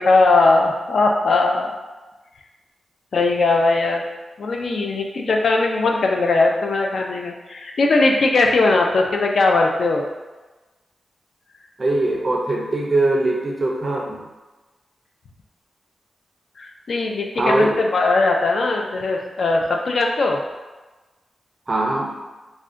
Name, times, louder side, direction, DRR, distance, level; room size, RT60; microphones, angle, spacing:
voice 1, 0.0-1.7 3.1-4.0 4.4-10.1 16.6-20.4, left 3 dB, 55° left, 1 dB, 0.3 m, -19 dB
voice 2, 11.8-14.2 17.4-17.8 21.7-22.1, right 2 dB, 30° right, -1 dB, 0.4 m, -21 dB
2.5 x 2.1 x 3.5 m, 1.2 s
wide cardioid pair, 180°, 0 cm